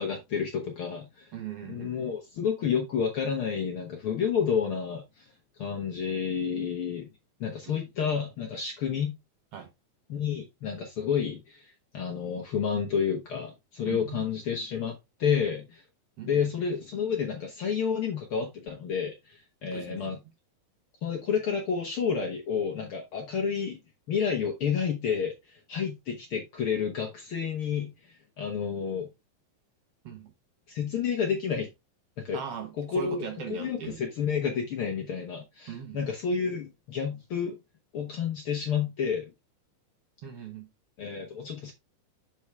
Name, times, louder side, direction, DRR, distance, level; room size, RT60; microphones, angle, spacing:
voice 1, 0.0-1.3 1.7-5.3 5.6-7.1 7.4-9.2 10.1-14.9 15.2-15.8 16.3-20.2 21.0-23.8 24.1-29.1 30.7-31.7 32.2-32.4 32.8-37.6 37.9-39.3 41.0-41.7, left 7 dB, 60° left, 1.5 m, -30 dB
voice 2, 1.3-1.9 7.7-7.8 9.5-9.7 13.9-14.3 16.2-16.4 19.7-20.2 30.0-30.3 32.3-34.0 35.7-36.0 40.2-40.7, right 8 dB, 60° right, 1.9 m, -39 dB
7.0 x 4.5 x 3.5 m
omnidirectional pair, 3.5 m